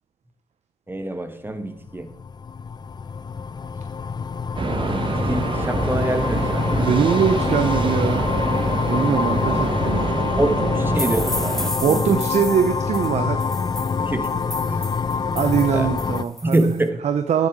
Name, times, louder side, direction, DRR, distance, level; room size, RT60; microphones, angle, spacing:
voice 1, 0.9-2.1 4.8-7.0 10.3-11.5 11.9-12.2 14.0-14.9 15.7-15.9 16.4-17.0, right 1 dB, 15° right, 8 dB, 1.3 m, -26 dB
sound 1, 1.9-16.2, left 5 dB, 35° left, 0.4 m, -25 dB
sound 2, 4.6-11.7, right 3 dB, 40° right, 1.2 m, -26 dB
voice 2, 6.8-8.3 8.9-10.7 11.8-13.4 15.3-16.7 17.0-17.5, right 7 dB, 65° right, 9 dB, 0.7 m, -22 dB
sound 3, 11.0-16.8, left 1 dB, 5° left, 0.9 m, -33 dB
10.5 x 9.5 x 3.6 m, 0.84 s
supercardioid pair, 55°, 13 cm